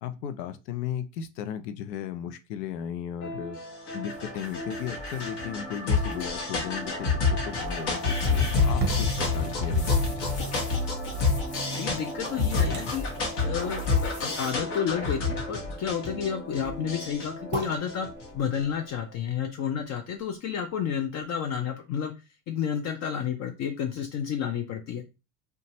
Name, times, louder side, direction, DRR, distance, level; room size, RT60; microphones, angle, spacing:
voice 1, 0.0-3.6 3.9-7.2 7.5-9.9, left 9 dB, 85° left, 10 dB, 0.6 m, -35 dB
sound 1, 3.2-18.7, left 4 dB, 55° left, 1.2 m, -29 dB
sound 2, 4.1-14.5, left 1 dB, 15° left, 1.0 m, -48 dB
sound 3, 8.7-20.6 21.0-21.1, right 5 dB, 20° right, 0.7 m, -40 dB
voice 2, 11.8-13.1 13.4-18.1 18.3-22.1 22.5-25.0, left 8 dB, 35° left, 5 dB, 0.4 m, -31 dB
2.5 x 2.3 x 2.9 m, 0.28 s
hypercardioid pair, 90°, 48 cm